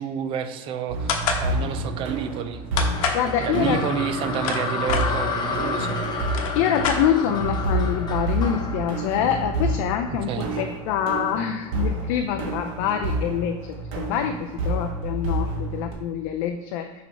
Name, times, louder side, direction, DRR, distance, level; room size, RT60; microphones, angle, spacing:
voice 1, 0.0-2.6 3.4-6.0 10.1-10.6, right 7 dB, 30° right, 9 dB, 0.4 m, -29 dB
sound 1, 0.9-15.9, right 2 dB, 65° right, 1.5 m, -29 dB
sound 2, 1.1-1.5 2.8-3.2 4.1-5.1 5.9-6.0 6.2-7.4, left 6 dB, 85° left, 1.0 m, -26 dB
sound 3, 2.9-10.1, left 4 dB, 25° left, 0.7 m, -31 dB
voice 2, 3.1-3.8 6.5-10.3 10.6-13.5 14.0-17.0, left 9 dB, 55° left, 5 dB, 0.5 m, -25 dB
6.1 x 3.5 x 4.6 m, 1.3 s
supercardioid pair, 160°, 18 cm